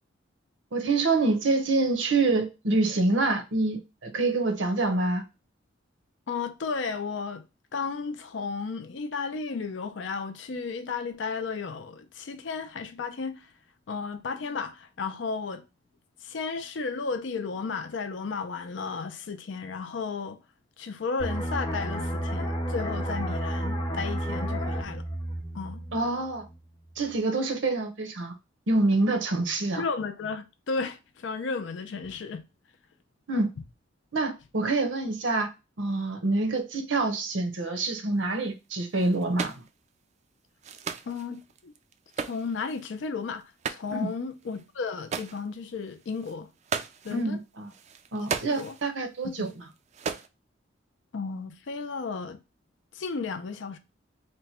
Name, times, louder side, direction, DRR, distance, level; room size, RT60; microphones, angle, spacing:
voice 1, 0.7-5.2 25.9-26.5 27.0-28.3 28.7-29.8 33.3-33.5 34.1-35.5 35.8-39.6 43.9-44.1 47.1-47.7 48.1-49.5, right 2 dB, 85° right, 0.8 m, -26 dB
voice 2, 6.3-7.5 7.7-13.5 13.9-15.6 16.2-20.4 20.8-25.0 25.5-25.8 29.8-32.4 41.0-41.7 42.2-43.4 43.7-46.5 47.0-47.4 48.5-48.8 49.2-49.5 51.1-52.4 52.9-53.8, left 4 dB, 75° left, 0.5 m, -33 dB
sound 1, 21.2-26.6 26.9-27.2, equal, 20° left, 0.6 m, -31 dB
sound 2, 38.9-39.7 40.6-42.9 43.4-44.1 44.4-44.6 44.9-45.5 45.8-47.3 47.7-48.9 49.3-50.3, right 6 dB, 35° right, 0.3 m, -37 dB
2.9 x 2.2 x 4.2 m
head